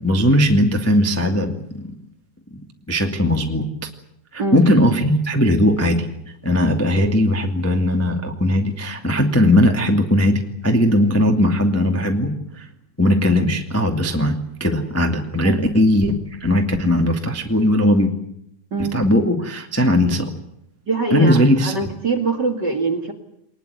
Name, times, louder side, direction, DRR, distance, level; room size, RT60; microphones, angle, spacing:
voice 1, 0.0-1.9 2.9-3.6 4.3-6.1 6.4-12.7 13.0-14.3 14.6-18.1 18.8-20.3 21.1-21.7, left 1 dB, 10° left, 3 dB, 1.0 m, -18 dB
voice 2, 20.9-23.1, right 3 dB, 35° right, 4 dB, 2.0 m, -23 dB
22.5 x 20.5 x 9.4 m, 0.76 s
omnidirectional pair, 4.7 m